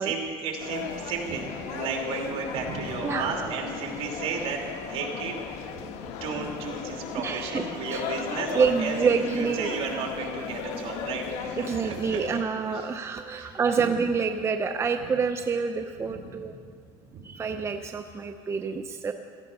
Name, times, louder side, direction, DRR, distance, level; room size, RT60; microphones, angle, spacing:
voice 1, 0.0-12.4 13.4-13.5 16.0-16.2 17.1-17.2, right 5 dB, 65° right, 1 dB, 2.9 m, -34 dB
sound 1, 0.6-12.4, left 6 dB, 80° left, 1.2 m, -36 dB
voice 2, 3.0-3.5 7.2-8.1 8.5-9.8 10.6-10.7 11.6-16.6 17.2-19.1, right 5 dB, 25° right, 7 dB, 0.6 m, -27 dB
16.5 x 14.0 x 5.5 m, 2.4 s
cardioid pair, 125°, 11 cm